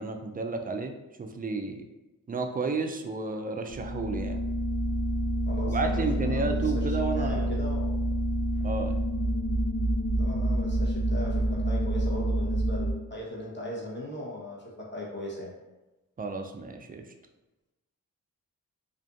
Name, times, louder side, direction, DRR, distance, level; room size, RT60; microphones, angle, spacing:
voice 1, 0.0-1.9 2.3-4.4 5.7-7.6 8.6-9.0 16.2-17.1, right 3 dB, 25° right, 5 dB, 0.3 m, -32 dB
sound 1, 3.7-12.9, right 1 dB, 80° left, 1.3 m, -28 dB
voice 2, 5.5-6.9 7.1-7.9 10.2-15.5, left 1 dB, 30° left, -4 dB, 1.0 m, -38 dB
2.5 x 2.5 x 2.4 m, 1.1 s
cardioid pair, 40°, 36 cm